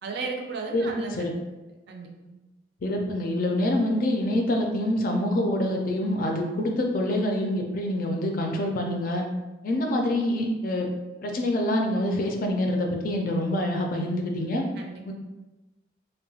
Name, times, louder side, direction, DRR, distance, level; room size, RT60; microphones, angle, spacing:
voice 1, 0.0-1.3 1.9-2.4 14.8-15.0, right 4 dB, 60° right, 1 dB, 0.4 m, -35 dB
voice 2, 0.7-1.3 2.8-9.2 9.6-10.9 11.2-14.7 15.0-15.1, left 1 dB, 50° left, 2 dB, 0.4 m, -26 dB
2.8 x 2.1 x 2.7 m, 1.1 s
head